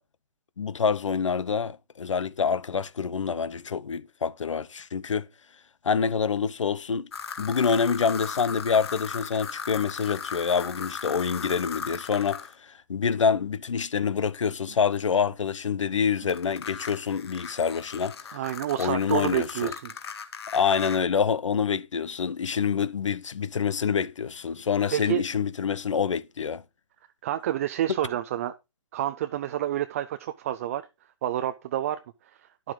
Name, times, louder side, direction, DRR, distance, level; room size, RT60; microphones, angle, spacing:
voice 1, 0.6-5.3 5.8-7.1 7.4-18.2 18.8-19.7 20.5-26.6, left 6 dB, 80° left, 0.9 m, -26 dB
sound 1, 7.1-12.5 16.3-21.0, left 6 dB, 55° left, 1.9 m, -38 dB
voice 2, 18.3-19.9 24.9-25.2 27.2-28.5 28.9-30.8 31.2-32.0, right 12 dB, 30° right, 0.5 m, -28 dB
11.0 x 7.6 x 3.8 m
hypercardioid pair, 155°, 16 cm